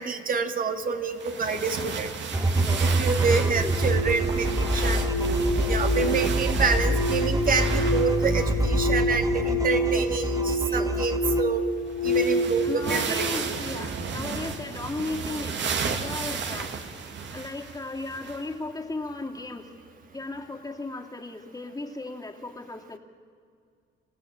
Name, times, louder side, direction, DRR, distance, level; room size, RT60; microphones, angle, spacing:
voice 1, 0.0-2.1 2.8-5.1 5.7-11.7 12.0-13.4, right 4 dB, 45° right, 7 dB, 2.1 m, -28 dB
sound 1, 1.2-8.7 8.9-9.0 11.5-11.6 11.9-18.5 19.1-19.2 20.4-20.5, right 5 dB, 65° right, 2.4 m, -33 dB
sound 2, 2.3-11.4, right 1 dB, 15° right, 1.4 m, -26 dB
voice 2, 2.5-2.8 3.2-3.8 9.8-10.1 10.6-10.9 12.6-16.7 17.3-19.7 20.1-23.0, left 2 dB, 20° left, 2 dB, 2.7 m, -36 dB
sound 3, 3.5-14.5, equal, 70° left, 2.3 m, -28 dB
27.5 x 16.0 x 8.8 m, 2.2 s
cardioid pair, 90°, 20 cm